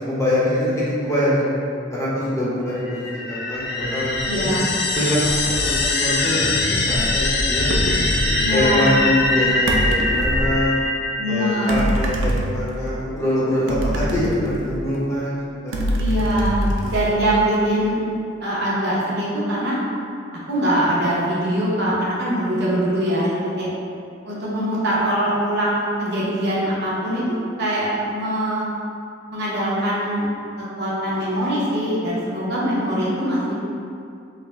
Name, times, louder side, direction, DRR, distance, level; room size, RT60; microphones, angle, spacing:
voice 1, 0.0-1.5 1.9-4.5 4.9-5.2 5.5-7.7 8.2-10.7 11.3-16.0 16.8-16.9, left 1 dB, 15° left, -9 dB, 0.9 m, -24 dB
sound 1, 2.8-12.1, left 2 dB, 60° left, 0.4 m, -23 dB
voice 2, 4.3-4.7 8.4-8.9 11.2-11.7 16.0-16.6 16.9-18.0 18.4-19.8 20.5-23.7 24.2-27.2 27.6-28.6 29.3-30.3 30.8-33.6, right 1 dB, 60° right, -7 dB, 0.9 m, -22 dB
sound 2, 7.7-8.1 9.7-10.6 11.7-12.9 13.7-15.0 15.7-17.6, right 1 dB, 75° right, 0.5 m, -24 dB
4.9 x 2.2 x 3.6 m, 2.4 s
head